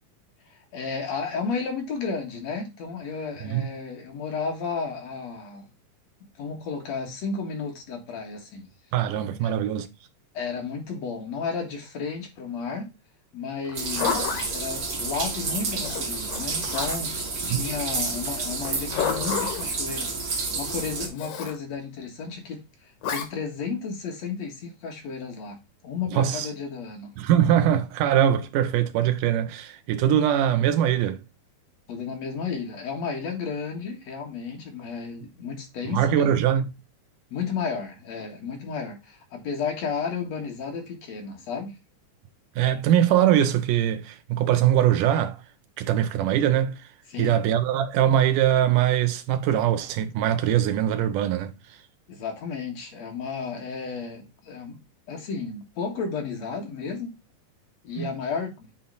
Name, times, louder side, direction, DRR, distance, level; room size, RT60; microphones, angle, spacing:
voice 1, 0.5-5.6 6.4-8.7 9.4-9.5 10.3-12.9 13.3-22.6 23.1-25.6 25.8-27.1 31.9-36.3 37.3-41.8 47.1-47.4 52.1-54.8 55.1-57.2 57.8-58.7, left 5 dB, 55° left, 2.6 m, -33 dB
voice 2, 8.9-9.9 17.4-17.6 26.1-26.5 27.2-31.2 35.9-36.7 42.6-45.4 45.8-46.8 47.2-51.5 58.0-58.1, right 10 dB, 75° right, 2.4 m, -22 dB
Zipper (clothing), 13.6-14.5 15.8-17.2 18.6-19.7 21.2-21.6 23.0-23.3, left 7 dB, 80° left, 3.2 m, -30 dB
sound 1, 13.7-21.1, right 3 dB, 50° right, 2.9 m, -30 dB
8.7 x 4.0 x 3.9 m
omnidirectional pair, 3.9 m